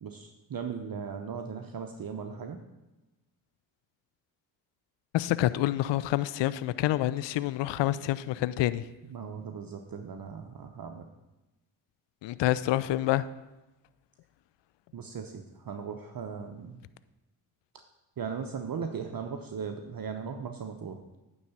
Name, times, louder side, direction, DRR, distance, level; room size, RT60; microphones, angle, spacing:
voice 1, 0.0-2.6 9.1-11.1 14.9-16.8 18.2-21.2, right 6 dB, 45° right, 0.9 m, -38 dB
voice 2, 5.1-8.9 12.2-13.3, left 15 dB, 60° left, 0.5 m, -27 dB
9.5 x 4.0 x 7.1 m
hypercardioid pair, 40°, 50 cm